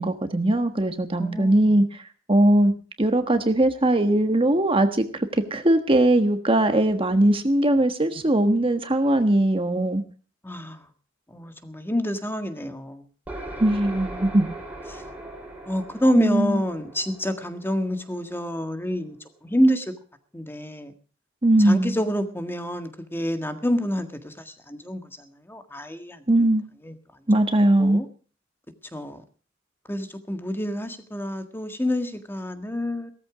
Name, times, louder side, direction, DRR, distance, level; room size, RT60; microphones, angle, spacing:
voice 1, 0.0-2.0 2.3-2.7 3.0-5.1 5.3-10.0 13.6-14.5 16.1-16.6 21.4-22.0 26.3-26.6 27.3-28.0, right 1 dB, 30° right, 7 dB, 1.4 m, -20 dB
voice 2, 1.2-1.6 10.4-10.9 11.3-13.0 14.9-15.0 15.7-19.2 19.4-19.8 20.3-20.9 21.6-26.2 26.8-26.9 27.8-28.0 28.9-29.2 29.9-33.1, equal, 10° left, 7 dB, 1.7 m, -27 dB
sound 1, 13.3-18.9, right 1 dB, 10° right, 3.8 m, -39 dB
17.0 x 14.0 x 5.0 m, 0.40 s
head